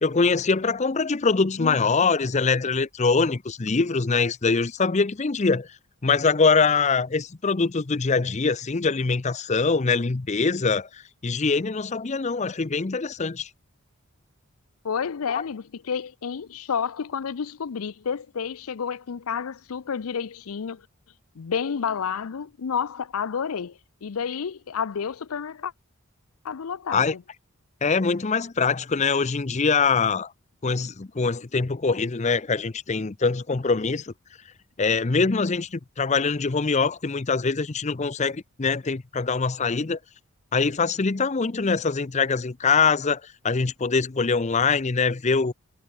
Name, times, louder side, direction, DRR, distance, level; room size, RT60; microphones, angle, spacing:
voice 1, 0.0-5.7 6.0-13.5 26.9-27.1 27.8-30.3 30.6-34.1 34.8-40.0 40.5-45.5, left 4 dB, 30° left, 0.6 m, -23 dB
voice 2, 14.8-20.9 21.4-25.7 26.4-27.2, left 6 dB, 75° left, 0.5 m, -30 dB
head